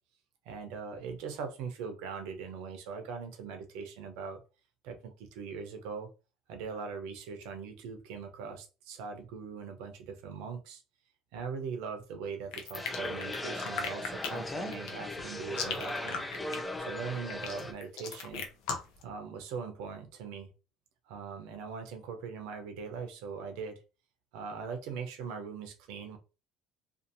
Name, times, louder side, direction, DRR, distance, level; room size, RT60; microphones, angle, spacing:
voice 1, 0.5-4.4 4.8-6.1 6.5-10.8 11.3-16.3 16.8-18.5 19.0-20.5 21.1-23.8 24.3-26.2, right 5 dB, 80° right, 0.7 m, -41 dB
sound 1, 12.5-19.0, left 5 dB, 75° left, 0.6 m, -37 dB
sound 2, 12.7-17.7, left 1 dB, 15° left, 0.5 m, -38 dB
2.7 x 2.5 x 2.6 m
supercardioid pair, 85°, 0 cm